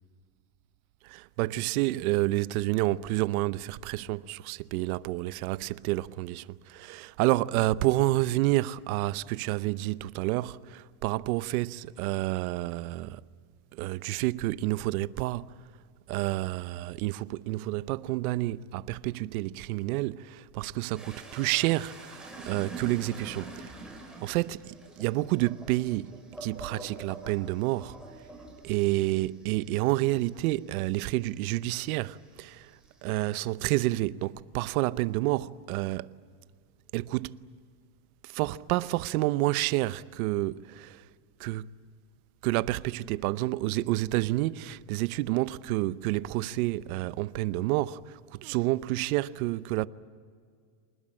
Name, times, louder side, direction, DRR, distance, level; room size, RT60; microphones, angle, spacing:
voice 1, 1.1-13.2 13.7-15.5 16.1-23.6 24.2-28.0 28.6-32.7 33.0-36.1 36.9-37.4 38.2-41.0 41.4-41.7 42.4-49.9, right 18 dB, 70° right, 0.9 m, -29 dB
sound 1, 20.9-31.9 32.3-33.4, right 2 dB, ahead, 4.6 m, -46 dB
27.0 x 20.0 x 8.8 m
supercardioid pair, 155°, 45 cm